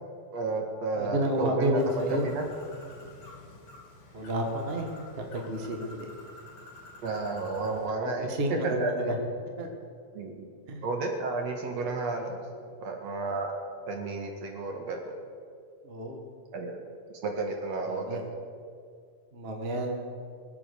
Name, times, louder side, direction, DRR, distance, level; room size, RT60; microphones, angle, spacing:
voice 1, 0.3-2.5 7.0-8.9 10.1-10.5 10.8-12.4 12.8-13.5 13.9-15.1 16.5-16.8 17.2-18.2, right 3 dB, 60° right, 2 dB, 2.8 m, -32 dB
voice 2, 0.9-2.3 4.1-4.9 5.3-6.1 8.0-9.2 9.6-9.7 10.7-10.8 15.8-16.2 17.9-18.2 19.3-19.9, right 1 dB, 25° right, 2 dB, 1.4 m, -30 dB
Bird, 1.8-7.9, left 2 dB, 55° left, 3.9 m, -49 dB
22.5 x 8.4 x 6.8 m, 2.2 s
omnidirectional pair, 3.4 m